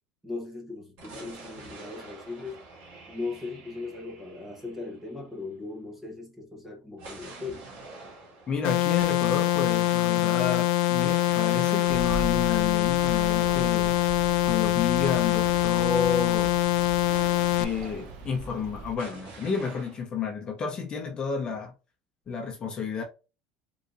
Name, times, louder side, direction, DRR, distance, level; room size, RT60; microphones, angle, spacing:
voice 1, 0.2-2.6 3.1-7.6, left 3 dB, 5° right, 1.1 m, -38 dB
sound 1, 1.0-5.7 7.0-18.6 19.0-20.0, right 3 dB, 60° right, 2.0 m, -46 dB
voice 2, 8.5-13.9 14.4-16.6 17.6-21.7 22.3-23.0, left 6 dB, 25° left, 0.9 m, -31 dB
sound 2, 8.6-17.6, left 14 dB, 75° left, 0.3 m, -24 dB
sound 3, 11.9-19.0, right 3 dB, 80° right, 0.9 m, -40 dB
3.9 x 2.9 x 2.6 m
cardioid pair, 155°, 4 cm